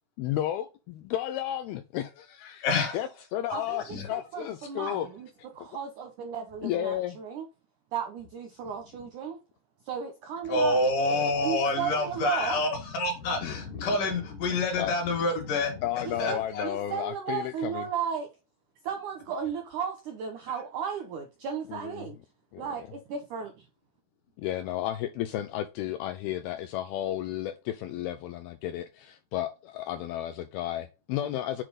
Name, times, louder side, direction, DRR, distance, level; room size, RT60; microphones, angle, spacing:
voice 1, 0.2-2.7 2.9-5.1 5.6-5.7 6.6-7.2 13.4-13.6 13.9-14.0 14.8-14.9 15.8-17.9 21.7-22.1 22.5-22.9 24.4-31.6, left 12 dB, 80° left, 2.3 m, -33 dB
voice 2, 2.6-3.0 3.9-4.1 10.5-16.6, left 2 dB, 60° left, 3.0 m, -27 dB
voice 3, 3.5-5.3 5.5-7.5 7.9-9.4 9.8-10.8 11.4-12.6 16.0-18.3 18.8-22.2 22.6-23.6, right 7 dB, 75° right, 1.8 m, -35 dB
7.6 x 4.7 x 4.1 m
omnidirectional pair, 4.9 m